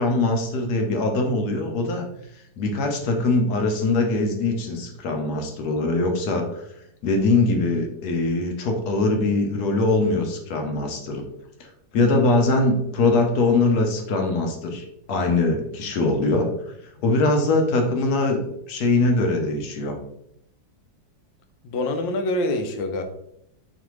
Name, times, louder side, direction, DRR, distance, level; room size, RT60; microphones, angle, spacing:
voice 1, 0.0-2.1 2.6-6.6 7.0-11.2 11.9-16.5 17.0-18.4 18.7-20.0, left 2 dB, 65° left, 3 dB, 1.1 m, -22 dB
voice 2, 21.6-23.0, left 1 dB, 85° left, 6 dB, 1.3 m, -25 dB
4.1 x 3.3 x 3.0 m, 0.75 s
omnidirectional pair, 2.0 m